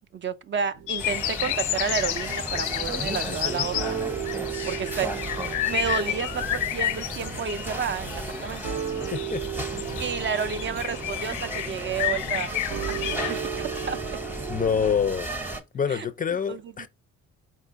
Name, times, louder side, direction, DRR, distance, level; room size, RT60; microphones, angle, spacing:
voice 1, 0.1-4.0 4.7-5.1 5.7-8.6 10.0-12.6 12.9-14.2 15.9-16.1 16.5-16.9, right 7 dB, 40° right, 0.4 m, -31 dB
sound 1, 0.7-1.9 2.2-2.6 3.0-3.4 3.7-14.7, right 9 dB, 85° right, 0.9 m, -36 dB
sound 2, 0.9-13.4, left 14 dB, 90° left, 0.5 m, -31 dB
sound 3, 1.0-15.6, right 1 dB, 5° right, 0.8 m, -35 dB
voice 2, 9.1-9.6 14.5-15.3 15.7-16.9, left 7 dB, 30° left, 0.3 m, -26 dB
4.4 x 2.4 x 3.8 m
cardioid pair, 90°, 30 cm